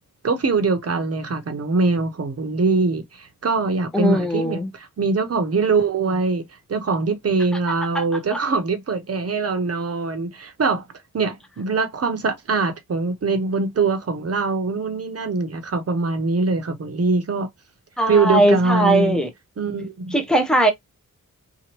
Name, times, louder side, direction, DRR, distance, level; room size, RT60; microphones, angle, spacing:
voice 1, 0.2-6.4 6.7-10.9 11.1-17.5 18.1-19.2 19.6-20.1, right 4 dB, 45° right, 0.8 m, -23 dB
voice 2, 3.9-4.7 7.9-8.0 18.0-19.3 20.1-20.7, right 1 dB, ahead, 0.7 m, -19 dB
2.9 x 2.4 x 2.9 m
wide cardioid pair, 130°, 33 cm